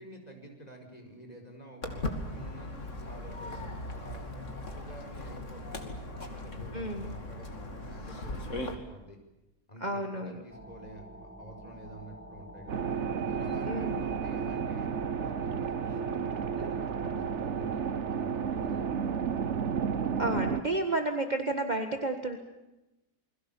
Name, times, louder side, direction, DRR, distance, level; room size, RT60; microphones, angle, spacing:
voice 1, 0.0-2.7 3.0-4.3 4.7-9.2 9.7-12.8 13.2-14.9 15.2-19.1, right 1 dB, 25° left, 3 dB, 5.3 m, -49 dB
Walk footsteps, 1.8-8.7, left 1 dB, 45° left, 2.9 m, -38 dB
voice 2, 6.7-7.1 9.8-10.4 13.7-13.9 20.2-22.4, right 2 dB, 25° right, 4 dB, 1.8 m, -31 dB
sound 1, 10.5-17.4, right 1 dB, 10° right, 1.6 m, -48 dB
sound 2, 12.7-20.6, right 7 dB, 50° right, 1.2 m, -32 dB
29.0 x 22.0 x 7.2 m, 0.98 s
omnidirectional pair, 1.8 m